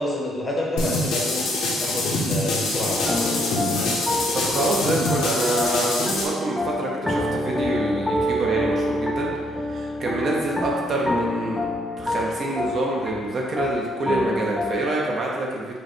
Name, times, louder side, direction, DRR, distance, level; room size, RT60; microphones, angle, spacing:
voice 1, 0.0-1.5 1.8-3.2, left 1 dB, 20° left, -3 dB, 0.8 m, -28 dB
sound 1, 0.8-6.3, left 2 dB, 70° left, 0.8 m, -25 dB
sound 2, 2.9-14.9, left 1 dB, 5° left, 0.4 m, -27 dB
voice 2, 4.3-11.6 12.0-15.8, right 2 dB, 40° right, -2 dB, 0.6 m, -26 dB
5.1 x 2.2 x 4.4 m, 1.5 s
cardioid pair, 160°, 0 cm